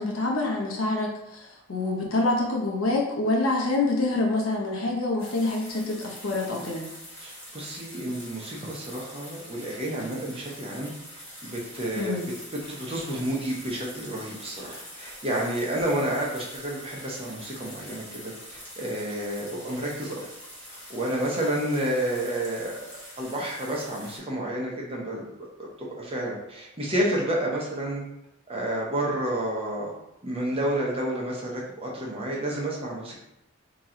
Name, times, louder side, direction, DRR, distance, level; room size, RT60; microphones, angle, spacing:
voice 1, 0.0-6.8 12.0-12.2, left 2 dB, 85° left, -1 dB, 0.9 m, -26 dB
sound 1, 5.2-24.2, equal, 10° left, 1.3 m, -44 dB
voice 2, 7.2-10.9 11.4-12.2 12.5-20.2 20.9-22.8 23.2-25.3 25.6-28.0 28.5-29.9 30.2-33.2, right 1 dB, 30° right, -3 dB, 0.9 m, -30 dB
3.0 x 2.9 x 3.7 m, 0.83 s
head